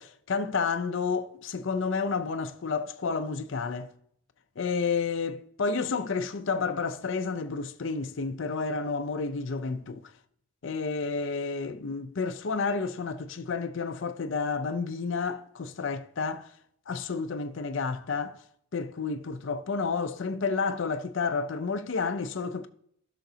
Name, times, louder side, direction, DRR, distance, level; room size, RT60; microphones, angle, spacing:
voice 1, 0.0-3.9 4.6-10.1 10.6-16.5 16.9-18.4 18.7-22.7, left 4 dB, 60° left, 0.5 m, -30 dB
13.0 x 5.9 x 2.8 m
head